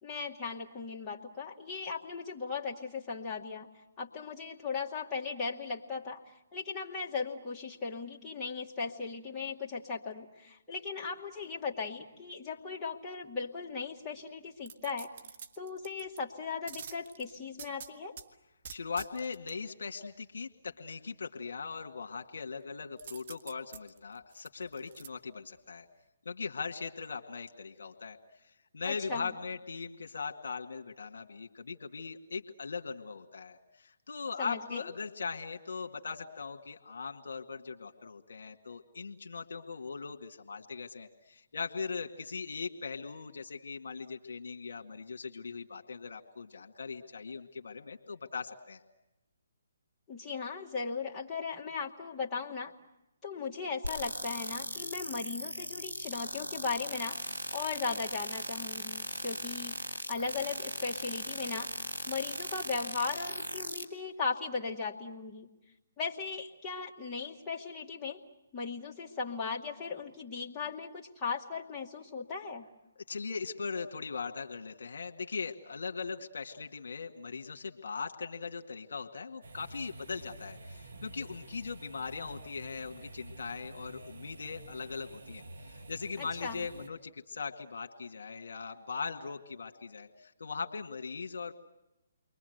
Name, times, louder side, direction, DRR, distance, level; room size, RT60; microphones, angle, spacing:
voice 1, 0.0-3.7 4.0-6.2 6.5-15.1 15.6-18.2 28.8-29.3 34.4-34.9 50.1-52.7 53.2-57.2 57.5-59.8 60.1-61.7 62.1-65.5 66.0-68.2 68.5-72.7 86.2-86.7, left 5 dB, 15° left, -4 dB, 2.5 m, -37 dB
sound 1, 14.6-16.2 16.7-18.3 18.6-19.5 23.0-25.1 25.5-25.6, right 7 dB, 50° right, 1.4 m, -47 dB
voice 2, 18.7-25.9 26.3-28.2 28.7-48.8 73.1-91.5, left 5 dB, 65° left, 4 dB, 2.0 m, -40 dB
sound 2, 53.8-63.8, right 1 dB, 90° right, 2.3 m, -38 dB
sound 3, 79.4-86.9, right 2 dB, 70° right, 2.1 m, -49 dB
29.5 x 23.0 x 8.0 m, 0.93 s
figure-of-eight pair, 140°, 0 cm